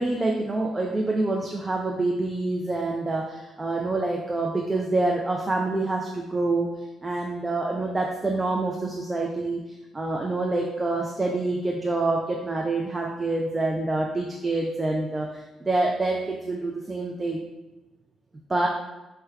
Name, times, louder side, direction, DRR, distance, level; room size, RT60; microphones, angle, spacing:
voice 1, 0.0-6.7 7.0-9.6 9.9-17.4 18.5-18.7, right 2 dB, 20° right, 0 dB, 0.3 m, -26 dB
4.3 x 2.2 x 2.3 m, 1.0 s
cardioid pair, 90°, 0 cm